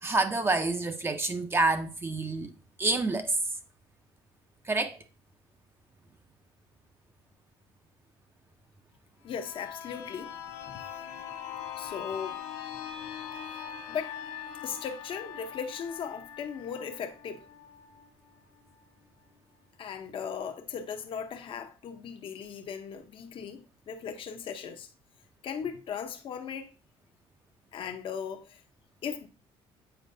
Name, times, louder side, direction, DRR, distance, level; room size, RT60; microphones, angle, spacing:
voice 1, 0.0-2.5 2.8-3.4 4.7-5.0, right 3 dB, 20° right, 0.6 m, -28 dB
sound 1, 9.2-18.8 19.2-19.3, left 8 dB, 75° left, 1.1 m, -42 dB
voice 2, 9.2-10.3 10.7-10.8 11.8-12.4 13.9-14.2 14.6-17.5 19.8-24.9 25.4-26.7 27.7-28.6 29.0-29.3, left 7 dB, 55° left, 0.8 m, -37 dB
7.9 x 4.4 x 2.7 m
cardioid pair, 110°, 11 cm